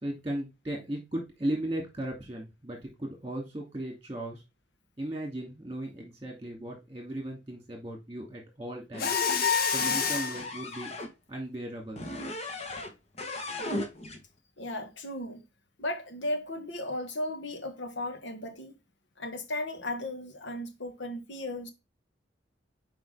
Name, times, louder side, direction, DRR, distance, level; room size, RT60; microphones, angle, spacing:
voice 1, 0.0-4.4 5.0-9.1 9.7-10.9 11.3-12.0, right 1 dB, 20° right, 2.5 m, -36 dB
sound 1, 8.9-11.1 12.0-12.9 13.2-14.2, left 1 dB, 35° left, 1.1 m, -37 dB
Mechanisms, 9.0-10.5, left 6 dB, 50° left, 0.9 m, -27 dB
voice 2, 14.6-15.4 15.8-18.8 19.2-21.7, left 1 dB, 80° left, 1.5 m, -35 dB
7.7 x 4.8 x 3.4 m
head